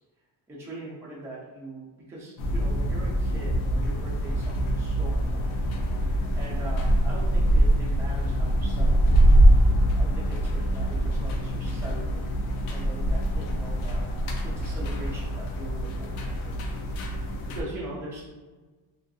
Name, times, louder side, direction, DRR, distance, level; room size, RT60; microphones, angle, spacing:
voice 1, 0.5-5.6 6.3-9.2 10.0-14.0 14.4-16.2 16.4-16.9 17.5-18.2, right 1 dB, 5° right, -6 dB, 0.4 m, -41 dB
sound 1, 2.4-17.6, right 1 dB, 80° left, 0.6 m, -24 dB
2.5 x 2.4 x 2.3 m, 1.3 s
cardioid pair, 140°, 47 cm